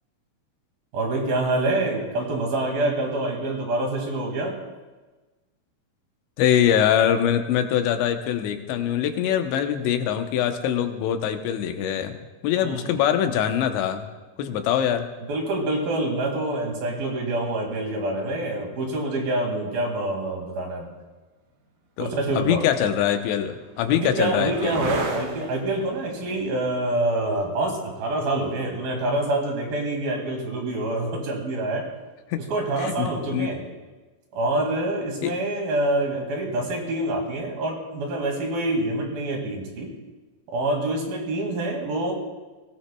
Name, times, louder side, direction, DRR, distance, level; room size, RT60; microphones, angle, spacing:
voice 1, 0.9-4.5 12.6-12.9 15.3-20.9 22.0-22.7 23.9-31.8 32.4-33.6 34.3-39.9 40.5-42.1, right 2 dB, 60° right, 1 dB, 3.7 m, -26 dB
voice 2, 6.4-12.2 12.4-14.1 14.4-15.1 22.0-22.1 22.4-24.9 32.3-32.4 32.8-33.5 35.2-35.3, left 10 dB, 90° left, 7 dB, 3.2 m, -23 dB
sound 1, 21.6-21.7 22.6-30.2 32.5-33.1, right 3 dB, 80° right, 3.8 m, -38 dB
21.0 x 17.5 x 2.3 m, 1.2 s
omnidirectional pair, 5.0 m